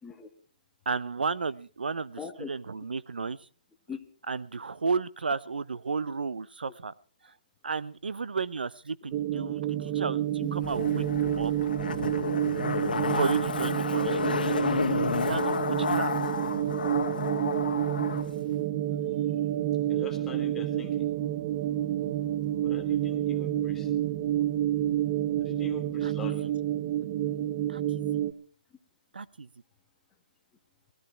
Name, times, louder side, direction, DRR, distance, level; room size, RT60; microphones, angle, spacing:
voice 1, 0.9-2.2 2.5-3.4 4.3-6.9 7.6-11.0 11.4-11.5 13.1-14.3 15.3-16.1 26.0-26.1 27.7-28.0 29.1-29.5, right 4 dB, 90° right, 18 dB, 0.9 m, -33 dB
voice 2, 2.2-2.8 3.9-4.0 10.4-10.6 19.9-21.1 22.6-23.9 25.4-26.5, left 5 dB, 5° left, 4 dB, 1.3 m, -43 dB
sound 1, 9.1-28.3, right 12 dB, 20° right, 0.8 m, -29 dB
Zipper (clothing), 10.6-18.2 18.5-18.6, left 5 dB, 65° left, 2.0 m, -31 dB
19.0 x 13.0 x 4.4 m, 0.41 s
hypercardioid pair, 165°, 5 cm